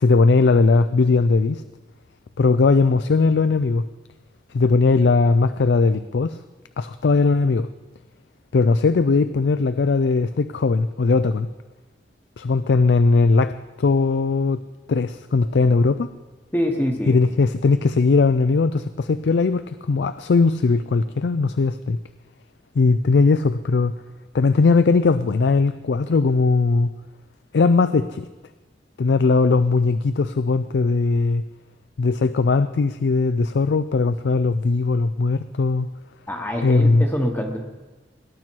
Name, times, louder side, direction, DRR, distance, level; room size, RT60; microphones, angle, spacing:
voice 1, 0.0-1.6 2.4-3.9 4.5-6.4 6.8-7.7 8.5-11.5 12.4-14.6 14.9-16.1 17.1-22.0 22.8-23.9 24.3-26.9 27.5-28.3 29.0-31.4 32.0-35.9 36.6-37.0, left 4 dB, 70° left, 13 dB, 0.4 m, -19 dB
voice 2, 16.5-17.2 36.3-37.6, equal, 10° left, 2 dB, 1.0 m, -25 dB
18.0 x 11.0 x 4.6 m, 1.2 s
head